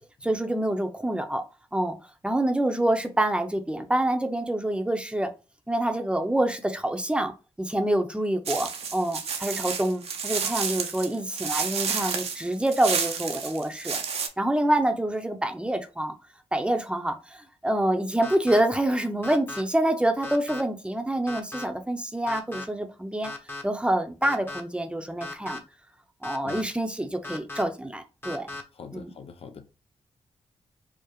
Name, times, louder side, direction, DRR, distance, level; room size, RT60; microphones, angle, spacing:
voice 1, 0.2-1.4 1.7-2.0 2.2-5.3 5.7-7.3 7.6-14.0 14.4-16.1 16.5-23.3 23.6-25.6 26.2-28.5 28.9-29.1, right 1 dB, 10° right, 0.7 m, -26 dB
sound 1, 8.5-14.3, right 6 dB, 75° right, 0.7 m, -30 dB
sound 2, 18.2-18.6 19.2-19.6 20.2-20.6 21.3-21.6 22.3-22.6 23.2-23.6 24.2-24.6 25.2-25.6 26.2-26.6 27.2-27.6 28.2-28.6, left 3 dB, 20° left, 0.9 m, -36 dB
voice 2, 28.5-29.7, left 6 dB, 65° left, 0.5 m, -44 dB
4.7 x 2.1 x 3.0 m
cardioid pair, 65°, 11 cm